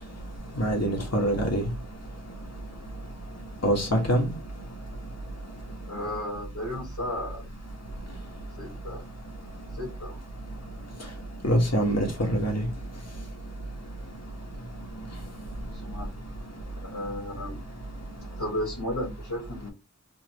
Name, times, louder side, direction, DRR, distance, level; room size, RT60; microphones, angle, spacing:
voice 1, 0.6-1.6 3.6-4.3 11.4-12.6, equal, 55° left, 1.7 m, -24 dB
voice 2, 5.9-7.4 8.6-9.0 9.8-10.2 15.7-16.1 16.9-17.6 18.4-19.7, left 1 dB, 70° left, 1.8 m, -34 dB
4.3 x 3.1 x 3.0 m
wide cardioid pair, 55°, 31 cm